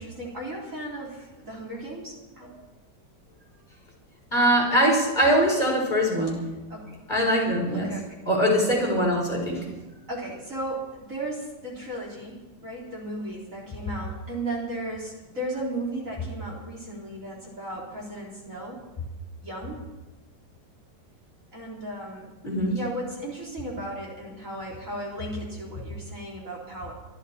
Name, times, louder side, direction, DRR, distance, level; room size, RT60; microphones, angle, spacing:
voice 1, 0.0-2.5 6.7-7.0 7.7-8.0 10.1-18.8 19.4-19.8 21.5-22.3 22.7-26.9, right 1 dB, 45° right, -3 dB, 4.0 m, -35 dB
voice 2, 4.3-6.4 7.1-7.9 8.3-9.6 22.4-22.8, equal, 25° left, -3 dB, 4.7 m, -22 dB
24.5 x 12.5 x 4.4 m, 1.1 s
omnidirectional pair, 1.9 m